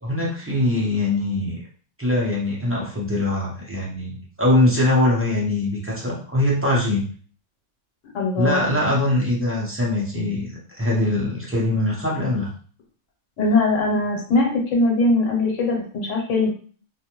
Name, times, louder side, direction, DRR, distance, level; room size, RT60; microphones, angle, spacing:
voice 1, 0.0-1.5 2.0-7.0 8.4-12.5, left 1 dB, 15° right, -6 dB, 0.5 m, -22 dB
voice 2, 8.1-8.7 13.4-16.5, left 2 dB, 80° left, -1 dB, 1.1 m, -21 dB
2.4 x 2.1 x 2.9 m, 0.44 s
omnidirectional pair, 1.3 m